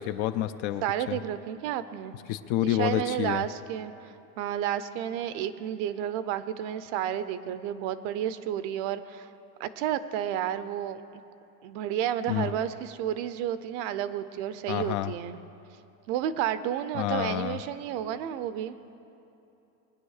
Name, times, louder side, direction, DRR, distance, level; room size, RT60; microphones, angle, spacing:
voice 1, 0.0-0.8 1.1-1.2 2.3-3.4 12.3-12.5 14.7-15.1 16.9-17.6, left 13 dB, 45° left, 11 dB, 0.5 m, -28 dB
voice 2, 0.8-2.1 2.6-9.3 9.6-11.2 11.6-15.4 16.1-18.8, right 10 dB, 50° right, 13 dB, 0.7 m, -31 dB
21.0 x 10.0 x 6.5 m, 2.8 s
supercardioid pair, 150°, 48 cm